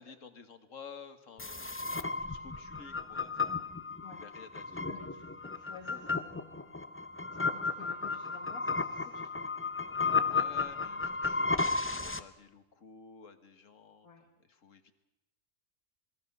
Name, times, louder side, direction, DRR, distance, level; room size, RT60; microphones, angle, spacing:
voice 1, 0.0-3.7 4.2-4.8 10.2-14.1 14.4-14.9, left 6 dB, 65° left, 9 dB, 1.8 m, -52 dB
sound 1, 1.4-12.2, left 4 dB, 15° left, 0.5 m, -34 dB
voice 2, 4.9-6.7 7.3-9.5 14.0-14.3, left 4 dB, 80° left, 2 dB, 2.3 m, -52 dB
26.5 x 21.5 x 5.4 m, 0.95 s
omnidirectional pair, 1.5 m